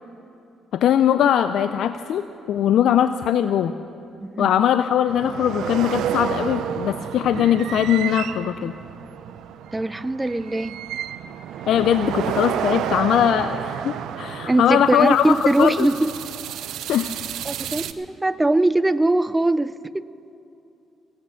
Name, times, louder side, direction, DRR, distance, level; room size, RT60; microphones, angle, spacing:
voice 1, 0.7-3.7 4.4-8.7 11.7-15.9 16.9-17.2, left 9 dB, 75° left, 11 dB, 0.4 m, -20 dB
sound 1, 5.1-17.9, right 10 dB, 80° right, 0.5 m, -30 dB
voice 2, 9.7-10.9 14.4-16.1 17.5-20.0, right 2 dB, 15° right, 16 dB, 0.4 m, -21 dB
16.5 x 8.6 x 7.9 m, 2.8 s
cardioid pair, 90°, 0 cm